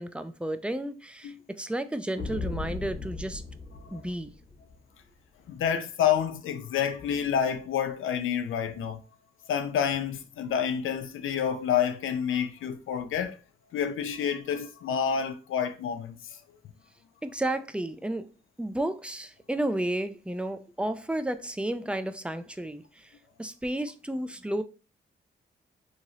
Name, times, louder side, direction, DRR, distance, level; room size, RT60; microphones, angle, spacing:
voice 1, 0.0-3.4 3.9-4.3 17.2-18.3 18.6-23.1 23.4-24.6, right 1 dB, 5° right, 0.3 m, -32 dB
sound 1, 2.2-4.8, left 3 dB, 45° left, 0.8 m, -37 dB
voice 2, 5.5-9.0 9.5-13.4 13.7-16.4, left 8 dB, 75° left, 0.4 m, -28 dB
2.9 x 2.8 x 2.7 m
cardioid pair, 65°, 21 cm